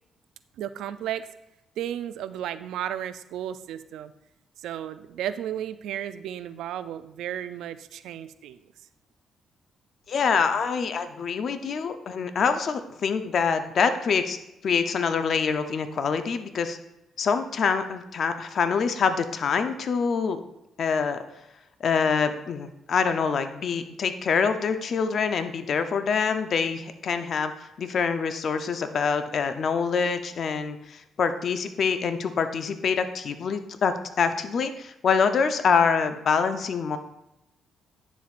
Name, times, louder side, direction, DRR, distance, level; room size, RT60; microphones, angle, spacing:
voice 1, 0.6-1.3 1.8-4.1 4.6-8.6, right 11 dB, 85° right, 13 dB, 0.4 m, -34 dB
voice 2, 10.1-14.4 14.6-16.8 17.2-20.4 20.8-21.2 21.8-37.0, left 5 dB, 55° left, 9 dB, 0.7 m, -25 dB
10.0 x 7.2 x 2.5 m, 0.91 s
cardioid pair, 90°, 0 cm